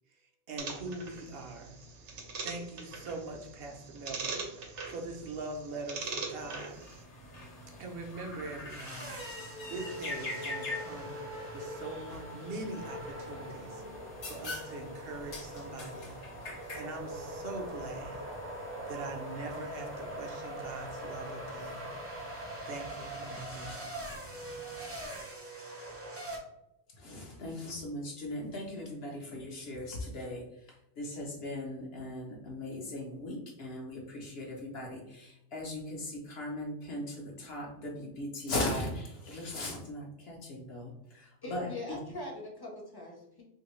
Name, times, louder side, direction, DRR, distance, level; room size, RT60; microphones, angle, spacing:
voice 1, 0.5-1.8 2.1-6.8 7.8-9.1 9.7-11.2 11.5-16.2 16.4-18.2 18.5-21.9 22.6-23.9, right 3 dB, 65° right, 2 dB, 0.8 m, -42 dB
sound 1, 0.6-7.0, right 4 dB, 85° right, 1.0 m, -42 dB
sound 2, 6.4-25.2, left 2 dB, 85° left, 1.2 m, -46 dB
sound 3, 8.7-26.4, right 1 dB, 25° right, 0.3 m, -42 dB
voice 2, 26.9-42.0, left 1 dB, 65° left, -1 dB, 0.8 m, -39 dB
voice 3, 41.4-43.4, left 2 dB, 25° left, -1 dB, 0.6 m, -41 dB
2.9 x 2.7 x 3.0 m, 0.84 s
omnidirectional pair, 1.2 m